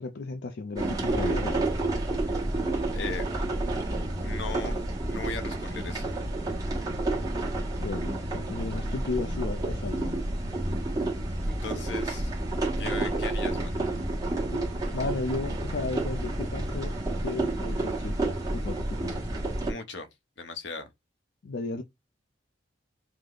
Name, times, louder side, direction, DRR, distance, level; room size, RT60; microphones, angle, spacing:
voice 1, 0.0-1.7 7.8-10.1 11.7-11.8 13.0-13.1 14.5-14.6 14.9-16.9 17.2-19.3 21.4-21.8, left 3 dB, 65° left, 0.5 m, -34 dB
sound 1, 0.8-19.7, right 2 dB, 20° right, 1.2 m, -30 dB
voice 2, 2.9-3.3 4.2-4.8 5.1-6.1 11.6-12.3 12.8-13.8 19.7-20.1 20.4-20.9, left 4 dB, 80° left, 0.9 m, -37 dB
4.9 x 2.1 x 3.8 m
head